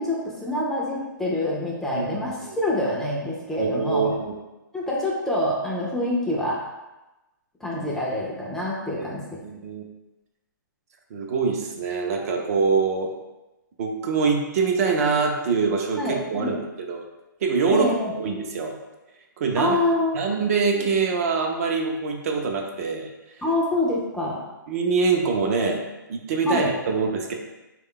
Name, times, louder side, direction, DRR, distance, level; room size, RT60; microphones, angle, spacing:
voice 1, 0.0-4.1 4.7-6.6 7.6-9.4 16.0-16.5 17.7-18.1 19.6-20.2 20.8-20.9 23.4-24.4 26.4-26.7, left 1 dB, 5° left, -5 dB, 0.4 m, -26 dB
voice 2, 1.9-2.6 3.6-4.3 9.0-9.1 9.4-9.8 11.1-13.1 13.8-17.0 17.4-17.9 18.1-18.8 19.4-19.8 20.1-23.1 24.7-25.8 26.1-27.3, right 5 dB, 45° right, 2 dB, 0.5 m, -24 dB
3.4 x 2.3 x 3.7 m, 1.0 s
hypercardioid pair, 145°, 11 cm